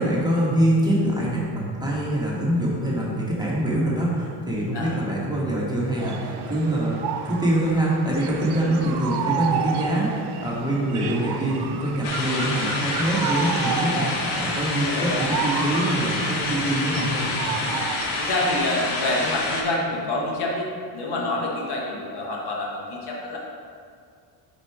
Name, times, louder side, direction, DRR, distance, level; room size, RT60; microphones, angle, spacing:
voice 1, 0.0-14.1 14.3-17.3, right 1 dB, 10° right, -6 dB, 1.3 m, -24 dB
sound 1, 6.0-18.1, right 7 dB, 55° right, 0.6 m, -31 dB
sound 2, 12.0-19.6, left 2 dB, 75° left, 1.2 m, -28 dB
voice 2, 14.8-15.2 18.2-20.7 20.9-23.4, left 2 dB, 55° left, -2 dB, 1.2 m, -27 dB
5.0 x 4.5 x 4.7 m, 2.1 s
cardioid pair, 110°, 49 cm